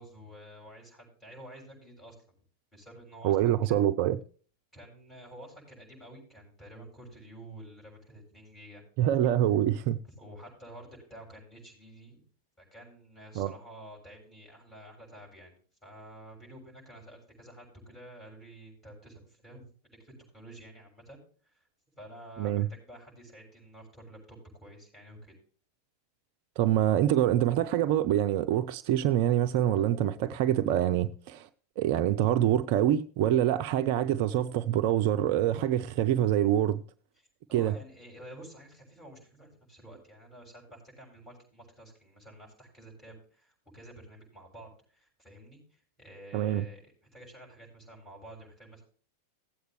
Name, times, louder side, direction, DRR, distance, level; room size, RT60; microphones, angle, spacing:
voice 1, 0.0-2.2 2.7-3.8 4.7-8.8 10.0-12.2 12.6-19.6 20.0-21.7 22.0-25.3 37.5-48.8, right 1 dB, 15° left, 6.9 m, -50 dB
voice 2, 3.2-4.2 9.0-10.0 13.4-13.5 22.4-22.7 26.6-31.5 31.8-36.8 37.5-37.7 46.3-46.6, right 11 dB, 45° right, 0.5 m, -25 dB
17.0 x 8.0 x 3.2 m
figure-of-eight pair, 90°, 0 cm